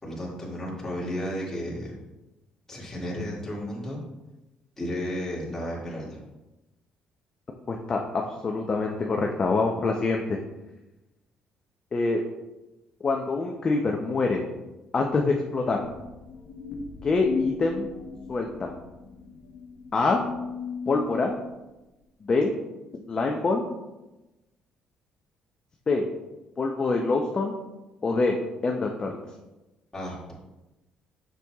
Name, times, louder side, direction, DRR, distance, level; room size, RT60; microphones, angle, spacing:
voice 1, 0.0-1.9 2.7-4.0 4.8-6.2 29.9-30.3, equal, 15° left, -4 dB, 2.1 m, -33 dB
voice 2, 7.7-10.4 11.9-12.2 13.0-14.4 14.9-15.8 17.0-17.9 18.3-18.7 19.9-20.2 20.9-21.3 22.2-22.5 23.1-23.6 25.9-26.1 26.6-27.5 28.0-28.4 28.6-29.2, left 3 dB, 35° left, 1 dB, 0.6 m, -25 dB
sound 1, 15.8-21.5, left 5 dB, 80° left, 0.8 m, -35 dB
6.7 x 6.1 x 2.4 m, 1.0 s
cardioid pair, 100°, 3 cm